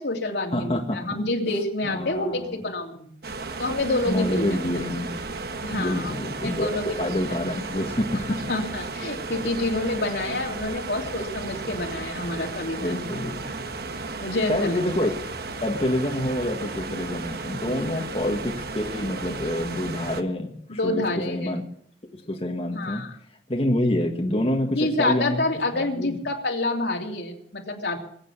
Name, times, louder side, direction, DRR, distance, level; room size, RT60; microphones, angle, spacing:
voice 1, 0.0-3.1 3.6-4.4 5.6-7.1 8.5-13.0 14.2-15.1 17.9-18.0 20.7-21.5 22.7-23.1 24.7-28.0, left 2 dB, 75° left, 1 dB, 3.0 m, -28 dB
voice 2, 0.5-1.0 1.8-2.6 4.1-5.2 5.7-6.7 7.0-8.4 12.8-13.5 14.5-15.1 15.6-21.6 22.1-23.0 23.5-25.4 25.7-26.2, left 1 dB, 35° left, 1 dB, 1.6 m, -27 dB
sound 1, 3.2-20.2, right 3 dB, 60° right, 1.2 m, -34 dB
21.0 x 9.0 x 7.3 m, 0.65 s
head